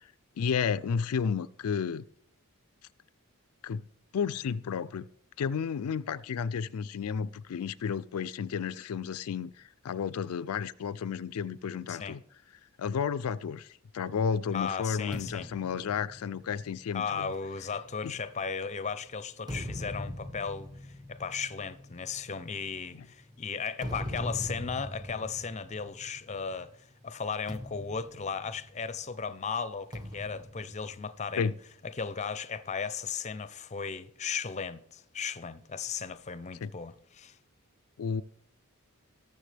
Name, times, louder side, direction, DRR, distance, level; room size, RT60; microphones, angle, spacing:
voice 1, 0.4-2.1 3.6-3.8 4.1-5.0 5.4-12.2 12.8-17.3 18.0-18.1 22.9-23.1 31.4-31.5 36.6-36.7 38.0-38.2, left 6 dB, 85° left, 0.4 m, -32 dB
voice 2, 14.5-15.5 16.9-20.7 21.1-26.7 27.0-31.5 31.9-37.4, left 6 dB, 30° left, 0.5 m, -36 dB
sound 1, 15.1-18.7 19.2-26.7 26.9-27.1 27.5-29.1 29.9-31.7, equal, 20° right, 1.0 m, -41 dB
19.0 x 6.8 x 3.3 m
head